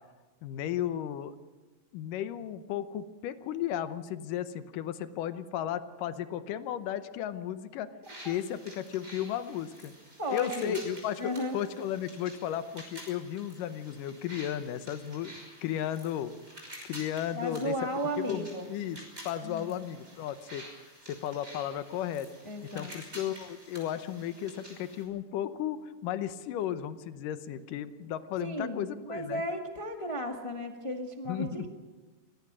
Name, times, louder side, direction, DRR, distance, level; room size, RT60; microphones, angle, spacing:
voice 1, 0.4-1.4 1.9-7.9 8.2-9.9 10.3-16.3 16.8-17.7 18.2-20.7 21.1-22.3 22.7-29.4 31.3-31.7, left 10 dB, 85° left, 11 dB, 2.6 m, -34 dB
sound 1, 8.0-25.0, right 1 dB, 20° right, 5.9 m, -49 dB
voice 2, 10.2-10.8 11.2-11.6 17.3-18.7 19.4-19.8 22.4-22.9 28.4-31.7, equal, 50° left, 3 dB, 0.3 m, -34 dB
23.5 x 18.5 x 6.2 m, 1.3 s
omnidirectional pair, 3.7 m